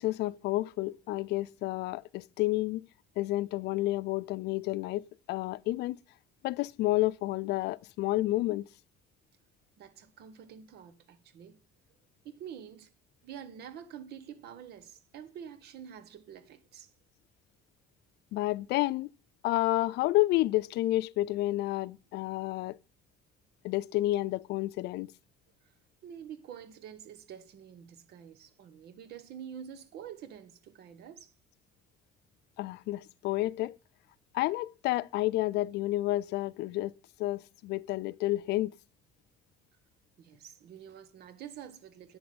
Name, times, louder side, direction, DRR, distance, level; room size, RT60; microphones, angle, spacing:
voice 1, 0.0-2.8 3.2-6.0 6.4-8.6 18.3-19.1 19.4-22.8 23.6-25.1 32.6-33.7 34.3-36.9 37.2-38.7, left 17 dB, 80° left, 0.5 m, -30 dB
voice 2, 9.8-11.6 12.2-12.9 13.2-16.9 25.6-25.7 26.0-31.3 40.2-42.2, right 8 dB, 75° right, 1.4 m, -47 dB
9.4 x 7.8 x 7.9 m
cardioid pair, 110°, 17 cm